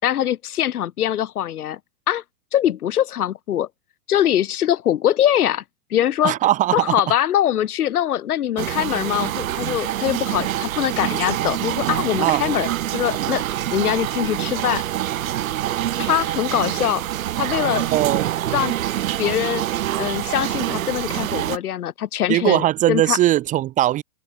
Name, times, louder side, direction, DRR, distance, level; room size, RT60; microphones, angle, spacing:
voice 1, 0.0-1.8 2.1-2.2 2.5-3.7 4.1-5.6 5.9-6.3 6.7-12.7 12.9-13.4 13.7-14.8 16.0-17.1 17.4-17.8 18.5-18.7 19.2-19.6 20.0-23.2, left 11 dB, 70° left, 3.0 m, -22 dB
voice 2, 6.2-6.9 12.2-12.5 17.9-18.3 22.3-24.0, right 14 dB, 15° right, 1.1 m, -19 dB
sound 1, 8.6-21.6, right 12 dB, 60° right, 2.6 m, -25 dB
hypercardioid pair, 155°, 46 cm